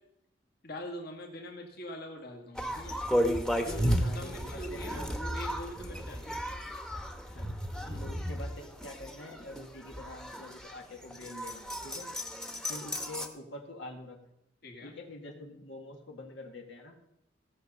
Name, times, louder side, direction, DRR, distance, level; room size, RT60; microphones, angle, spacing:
voice 1, 0.6-3.0 3.6-6.4 7.9-8.1 14.6-14.9, equal, 60° left, 2 dB, 1.9 m, -43 dB
sound 1, 2.5-13.3, equal, 5° left, 1.0 m, -34 dB
voice 2, 4.0-5.1 6.0-6.3 7.3-7.6 8.0-12.1 12.7-14.2 14.8-17.0, left 1 dB, 90° left, 1 dB, 1.9 m, -46 dB
16.5 x 7.0 x 5.5 m, 0.80 s
head